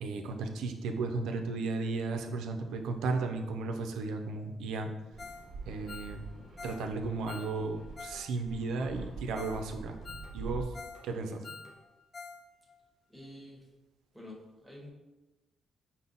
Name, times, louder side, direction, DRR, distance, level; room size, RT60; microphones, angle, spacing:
voice 1, 0.0-4.9 5.7-6.2 6.6-10.0 10.3-10.7 11.0-11.4, right 3 dB, 80° right, 5 dB, 0.5 m, -34 dB
Fixed-wing aircraft airplane, 5.1-10.6, right 4 dB, 60° right, 1.0 m, -45 dB
Ringtone, 5.2-5.5 5.7-8.2 8.5-8.6 9.1-9.2 9.4-9.6 9.9-11.0 11.3-12.4 12.7-12.8 13.2-13.3, left 4 dB, 35° left, 0.4 m, -47 dB
sound 1, 6.1-11.8, left 1 dB, 60° left, 1.0 m, -57 dB
voice 2, 13.1-13.7 14.1-14.9, left 1 dB, ahead, -3 dB, 1.2 m, -48 dB
5.4 x 2.1 x 3.9 m, 1.1 s
cardioid pair, 90°, 0 cm